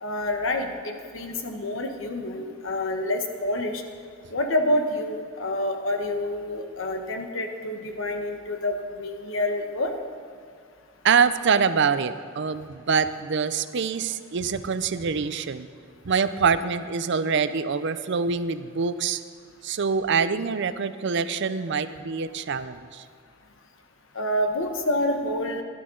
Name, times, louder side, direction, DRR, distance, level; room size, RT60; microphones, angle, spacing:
voice 1, 0.0-3.8 4.3-9.9 24.1-25.6, left 1 dB, 70° left, 5 dB, 1.2 m, -28 dB
voice 2, 11.0-15.7 16.1-19.2 19.6-23.0, right 6 dB, 60° right, 12 dB, 0.5 m, -25 dB
16.0 x 11.5 x 3.9 m, 2.2 s
head